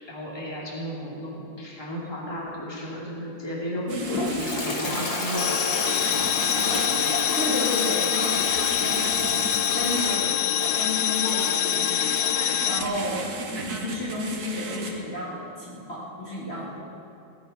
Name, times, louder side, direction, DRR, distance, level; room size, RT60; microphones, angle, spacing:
voice 1, 0.1-6.8 16.8-16.9, equal, 10° left, -4 dB, 2.7 m, -34 dB
Toilet flush, 3.9-12.4, left 2 dB, 55° left, 2.1 m, -31 dB
sound 1, 3.9-14.9, right 3 dB, 55° right, 1.8 m, -35 dB
sound 2, 5.4-12.8, left 12 dB, 70° left, 1.2 m, -25 dB
voice 2, 7.4-8.4 8.7-9.2 9.7-12.1 12.6-13.2 13.6-16.8, left 1 dB, 30° left, -7 dB, 2.6 m, -32 dB
17.5 x 12.5 x 5.6 m, 3.0 s
omnidirectional pair, 2.2 m